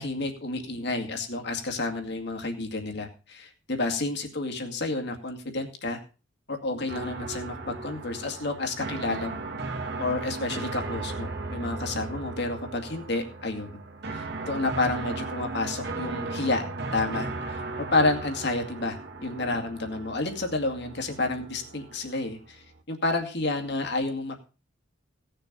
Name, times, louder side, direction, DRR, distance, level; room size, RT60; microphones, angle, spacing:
voice 1, 0.0-6.0 6.5-9.3 10.0-13.7 14.1-16.6 16.9-24.4, left 2 dB, 60° left, 4 dB, 2.2 m, -30 dB
sound 1, 6.9-22.8, right 3 dB, 60° right, 1.7 m, -36 dB
17.0 x 6.8 x 5.4 m, 0.35 s
head